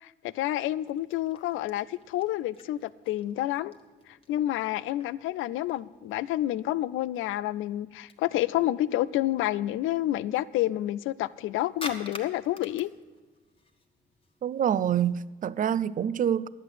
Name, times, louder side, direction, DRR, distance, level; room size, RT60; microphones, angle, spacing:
voice 1, 0.0-3.7 4.3-12.9, left 14 dB, 85° left, 0.4 m, -29 dB
sound 1, 0.8-15.2, left 2 dB, 25° left, 1.3 m, -49 dB
voice 2, 14.4-16.5, right 9 dB, 40° right, 0.4 m, -26 dB
11.0 x 8.0 x 8.1 m
cardioid pair, 90°, 20 cm